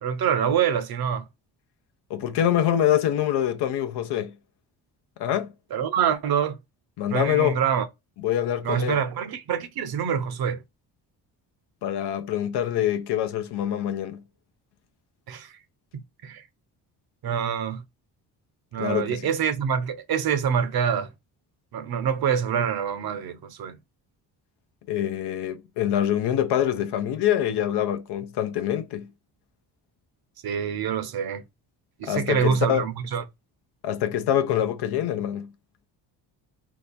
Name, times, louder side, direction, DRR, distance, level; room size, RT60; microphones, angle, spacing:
voice 1, 0.0-1.2 5.7-6.6 7.1-7.8 8.6-10.6 15.3-15.5 16.2-16.4 17.2-17.8 18.7-21.1 21.7-23.8 30.4-31.4 32.0-33.2, right 8 dB, 60° right, 0.8 m, -25 dB
voice 2, 2.1-4.3 5.2-5.5 7.0-7.6 8.2-9.0 11.8-14.2 18.8-19.2 24.9-29.1 32.0-32.8 33.8-35.5, left 10 dB, 65° left, 0.6 m, -25 dB
2.8 x 2.3 x 4.0 m
supercardioid pair, 65°, 43 cm